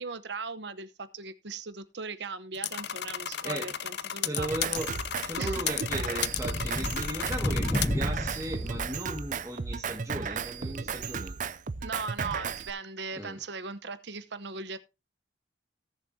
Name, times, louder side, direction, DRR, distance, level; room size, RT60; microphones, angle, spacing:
voice 1, 0.0-4.8 5.4-5.9 11.8-14.8, right 4 dB, 65° right, 1.0 m, -39 dB
sound 1, 2.5-7.9, left 10 dB, 60° left, 0.6 m, -34 dB
voice 2, 3.4-3.7 4.2-4.9 5.2-11.4 13.2-13.4, right 1 dB, 15° right, 1.9 m, -37 dB
Drum kit, 4.4-12.7, right 5 dB, 40° right, 0.5 m, -35 dB
sound 2, 5.0-5.1 5.3-9.3, left 1 dB, 15° left, 0.7 m, -33 dB
19.0 x 7.1 x 2.8 m
head